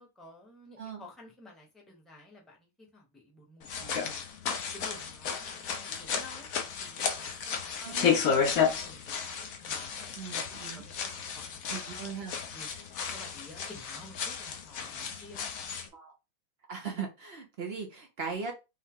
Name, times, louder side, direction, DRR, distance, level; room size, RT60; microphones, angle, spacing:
voice 1, 0.0-4.3 4.7-6.5 6.8-9.3 9.6-12.7 13.1-15.8, left 2 dB, ahead, -1 dB, 0.8 m, -52 dB
sound 1, 3.6-15.9, left 6 dB, 60° left, 1.0 m, -33 dB
voice 2, 7.8-8.1 10.1-10.8 11.7-12.3 15.9-16.1 16.7-18.5, right 5 dB, 55° right, 2 dB, 0.7 m, -39 dB
5.4 x 2.2 x 3.6 m, 0.26 s
omnidirectional pair, 2.1 m